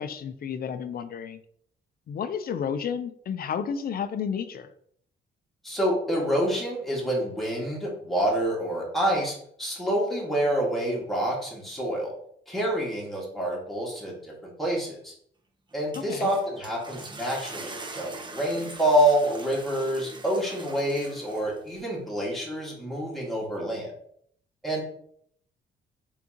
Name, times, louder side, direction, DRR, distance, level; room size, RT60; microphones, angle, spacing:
voice 1, 0.0-1.4 2.1-4.7 15.9-16.3, left 7 dB, 50° left, 12 dB, 0.5 m, -31 dB
voice 2, 5.6-12.1 12.5-15.1 15.7-23.9 24.6-24.8, right 1 dB, ahead, -5 dB, 1.9 m, -27 dB
sound 1, 15.7-21.8, right 2 dB, 25° right, 0.8 m, -43 dB
4.4 x 3.7 x 2.9 m, 0.65 s
cardioid pair, 90°, 20 cm